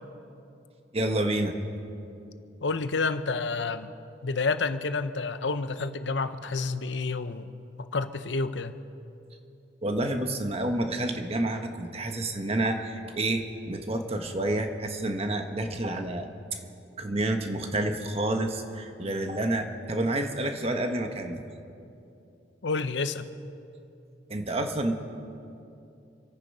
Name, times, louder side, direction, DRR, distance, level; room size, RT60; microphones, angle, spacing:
voice 1, 0.9-1.5 9.8-16.3 17.0-21.4 24.3-24.9, right 1 dB, 35° right, 5 dB, 1.3 m, -29 dB
voice 2, 2.6-3.9 4.2-7.5 7.8-8.8 22.6-23.3, left 4 dB, 70° left, 11 dB, 0.8 m, -29 dB
27.5 x 9.2 x 5.5 m, 2.7 s
head